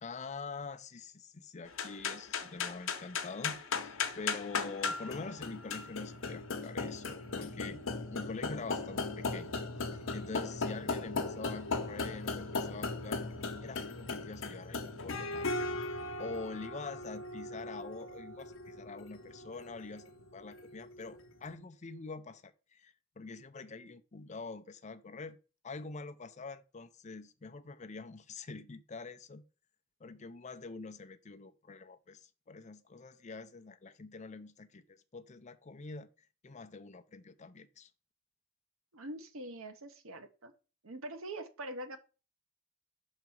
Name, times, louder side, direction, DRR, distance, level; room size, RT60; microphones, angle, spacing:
voice 1, 0.0-7.8 8.1-9.5 9.8-13.2 13.6-15.7 16.2-25.4 25.6-29.5 30.0-36.1 36.4-37.9, left 4 dB, 35° left, 0.5 m, -45 dB
sound 1, 1.7-21.2, left 4 dB, 70° left, 0.9 m, -38 dB
voice 2, 38.9-40.5 40.8-42.0, right 1 dB, 80° right, 1.1 m, -43 dB
5.9 x 4.0 x 6.1 m
head